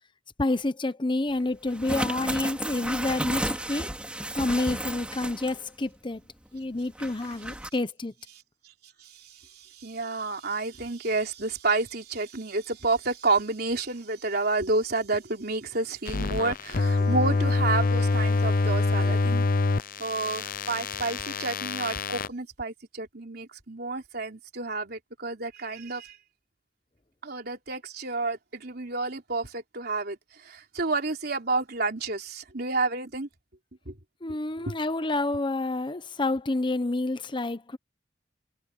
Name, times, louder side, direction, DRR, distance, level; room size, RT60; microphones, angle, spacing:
voice 1, 0.4-3.9 4.4-6.2 6.5-8.1 34.2-37.8, left 2 dB, 25° left, 0.9 m, -28 dB
sound 1, 1.7-5.7 6.0-6.1 6.9-7.7, right 1 dB, 5° right, 3.1 m, -33 dB
voice 2, 9.0-19.5 20.0-26.2 27.2-33.3 33.9-34.0 34.7-34.8, right 3 dB, 60° right, 3.5 m, -30 dB
sound 2, 16.1-22.3, left 3 dB, 50° left, 0.6 m, -26 dB
head